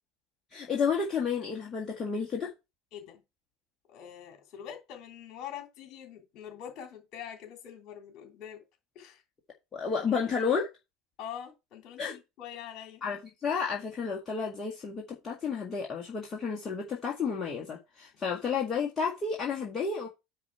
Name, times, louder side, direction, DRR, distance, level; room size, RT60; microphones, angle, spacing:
voice 1, 0.5-2.5 9.7-10.7 12.0-12.1 13.0-20.1, left 5 dB, 25° left, 1.7 m, -31 dB
voice 2, 2.9-3.2 3.9-8.6 8.9-9.2 10.1-10.6 11.2-13.0, left 9 dB, 45° left, 3.1 m, -44 dB
9.6 x 4.1 x 4.6 m
figure-of-eight pair, 70°, 0 cm